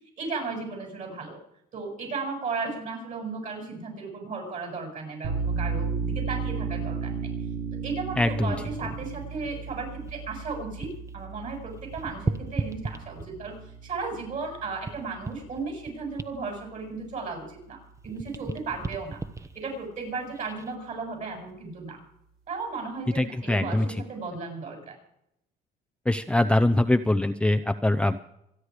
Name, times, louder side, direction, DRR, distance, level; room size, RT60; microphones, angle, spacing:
voice 1, 0.2-1.4 1.7-7.3 7.8-17.8 18.0-19.2 19.6-22.0 22.5-25.0, right 4 dB, 50° right, 2 dB, 7.7 m, -35 dB
sound 1, 5.2-16.5, right 5 dB, 80° right, 4.7 m, -34 dB
voice 2, 8.2-8.5 23.2-23.9 26.1-28.2, left 1 dB, 5° left, 7 dB, 0.6 m, -23 dB
sound 2, 8.4-11.1 11.4-13.6 14.1-17.7 17.9-20.7 21.3-21.5, right 3 dB, 15° right, 1.0 m, -37 dB
26.5 x 10.0 x 4.9 m, 0.79 s
cardioid pair, 110°, 17 cm